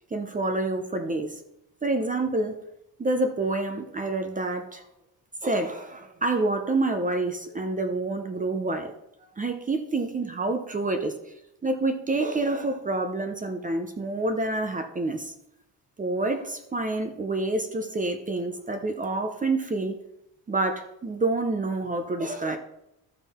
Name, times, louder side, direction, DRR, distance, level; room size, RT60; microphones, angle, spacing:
voice 1, 0.1-1.3 1.8-2.6 3.0-4.8 5.4-8.9 9.4-11.1 11.6-15.3 16.0-20.0 20.5-22.6, right 2 dB, 20° right, 7 dB, 0.6 m, -27 dB
12.5 x 5.3 x 4.2 m, 0.83 s
cardioid pair, 170°, 43 cm